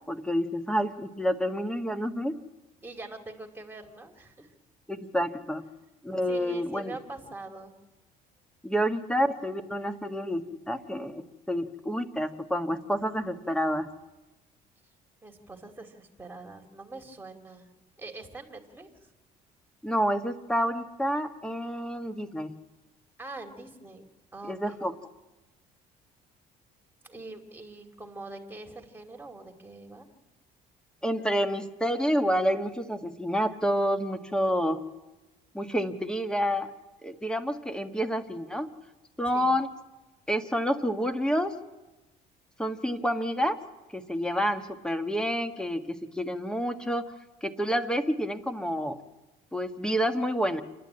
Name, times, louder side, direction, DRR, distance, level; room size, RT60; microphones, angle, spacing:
voice 1, 0.1-2.3 4.9-5.6 6.0-7.0 8.6-13.9 19.8-22.5 24.5-24.9 31.0-34.8 35.5-36.7 37.0-38.7 39.2-39.7 40.3-41.6 42.6-43.6 43.9-47.0 47.4-49.0 49.5-50.6, equal, 5° left, 9 dB, 1.3 m, -28 dB
voice 2, 2.8-4.5 6.2-7.7 15.2-17.7 18.0-19.1 23.2-24.8 27.0-30.1 39.3-39.5, right 2 dB, 10° right, 3 dB, 2.5 m, -44 dB
28.0 x 11.5 x 8.7 m, 1.1 s
cardioid pair, 110°, 17 cm